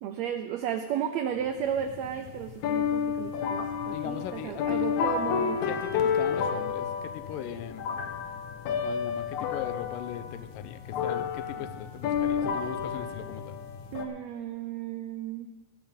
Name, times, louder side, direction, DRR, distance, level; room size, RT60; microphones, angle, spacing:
voice 1, 0.0-5.6 13.9-15.5, right 9 dB, 85° right, 8 dB, 1.5 m, -33 dB
sound 1, 1.5-14.1, left 7 dB, 70° left, 2.3 m, -31 dB
voice 2, 3.9-5.1 5.7-7.8 8.8-13.6, left 10 dB, 90° left, 10 dB, 2.4 m, -39 dB
17.5 x 13.0 x 3.7 m, 1.3 s
omnidirectional pair, 3.8 m